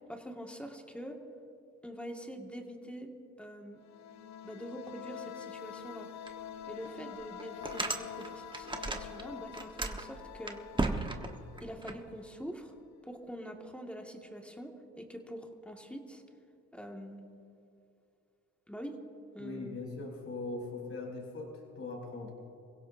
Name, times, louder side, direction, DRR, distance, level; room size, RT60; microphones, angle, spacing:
voice 1, 0.1-1.2 1.8-3.1 3.4-3.8 4.4-6.1 6.7-10.6 11.6-12.7 13.0-16.2 16.7-17.2 18.7-19.0 19.3-19.8, equal, 5° left, 2 dB, 1.8 m, -44 dB
sound 1, 3.8-12.4, left 9 dB, 65° left, 0.7 m, -46 dB
sound 2, 6.3-6.4 6.8-6.9 7.4-9.2 9.5-11.9, right 2 dB, 15° right, 1.2 m, -35 dB
voice 2, 19.4-22.3, left 3 dB, 50° left, -1 dB, 4.7 m, -40 dB
29.5 x 16.5 x 2.7 m, 2.7 s
cardioid pair, 90°, 30 cm